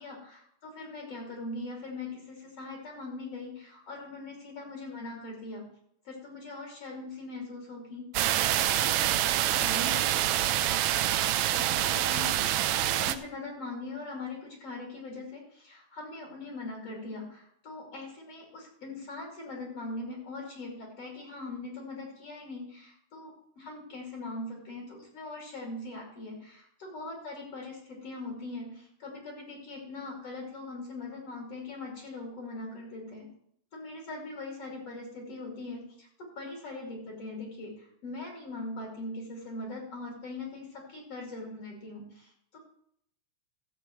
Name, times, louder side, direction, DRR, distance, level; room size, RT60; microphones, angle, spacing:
voice 1, 0.0-5.7 6.1-8.0 8.4-10.2 11.6-33.3 33.7-42.6, left 2 dB, 50° left, -1 dB, 3.6 m, -41 dB
sound 1, 8.1-13.2, right 13 dB, 80° right, 1.7 m, -26 dB
14.0 x 7.7 x 4.5 m, 0.68 s
omnidirectional pair, 3.7 m